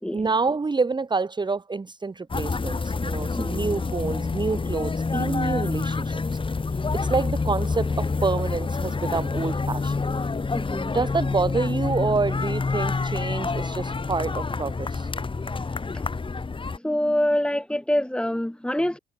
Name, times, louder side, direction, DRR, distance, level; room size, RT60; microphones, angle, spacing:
voice 1, 0.1-6.4 6.9-10.1 10.8-15.1, right 4 dB, 20° right, 1.4 m, -27 dB
sound 1, 2.3-16.8, left 4 dB, 25° left, 2.4 m, -27 dB
voice 2, 10.5-10.9 16.7-19.0, left 1 dB, 5° left, 5.1 m, -25 dB
cardioid pair, 90°, 20 cm